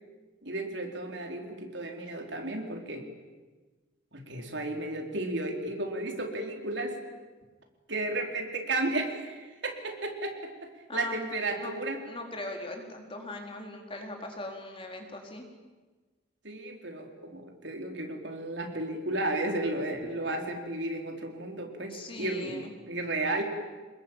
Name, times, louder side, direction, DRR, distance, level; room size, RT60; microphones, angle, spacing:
voice 1, 0.4-3.0 4.1-6.9 7.9-12.0 16.4-23.4, right 2 dB, 65° right, 3 dB, 4.2 m, -33 dB
voice 2, 12.1-15.4 21.9-22.7, left 2 dB, 30° left, 2 dB, 4.1 m, -40 dB
28.5 x 21.0 x 9.0 m, 1.3 s
head